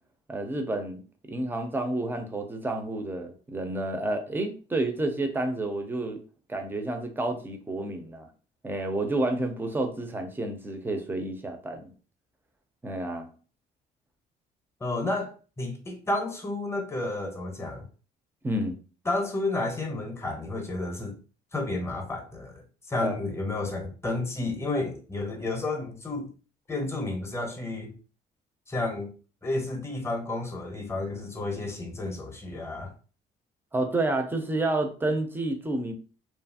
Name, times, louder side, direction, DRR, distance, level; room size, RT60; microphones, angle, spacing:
voice 1, 0.3-1.0 1.3-6.2 6.5-8.3 8.6-11.9 12.8-13.3 18.4-18.8 23.0-23.1 33.7-35.9, right 2 dB, 10° right, 0.5 m, -30 dB
voice 2, 14.8-15.3 15.6-17.8 19.0-21.2 21.5-22.6 22.9-26.3 26.7-27.9 28.7-29.1 29.4-32.9, left 2 dB, 15° left, 0.8 m, -31 dB
2.8 x 2.4 x 2.7 m
cardioid pair, 110°, 17 cm